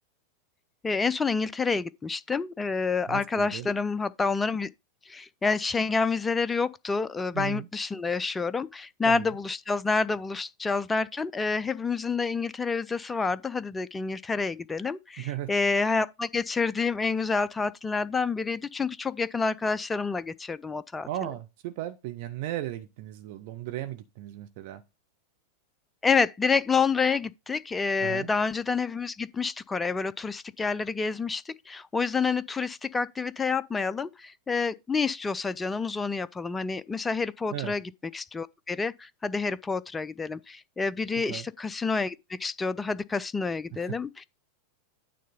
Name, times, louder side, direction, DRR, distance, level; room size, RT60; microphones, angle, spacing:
voice 1, 0.8-4.7 5.1-21.1 26.0-37.8 38.1-44.2, left 4 dB, 15° left, 0.3 m, -28 dB
voice 2, 3.1-3.7 7.3-7.7 9.1-9.3 15.2-15.5 21.0-24.8 28.0-28.3 37.5-37.8 41.3-41.5 43.7-44.0, right 13 dB, 50° right, 0.7 m, -36 dB
9.3 x 3.7 x 5.3 m
figure-of-eight pair, 90°, 0 cm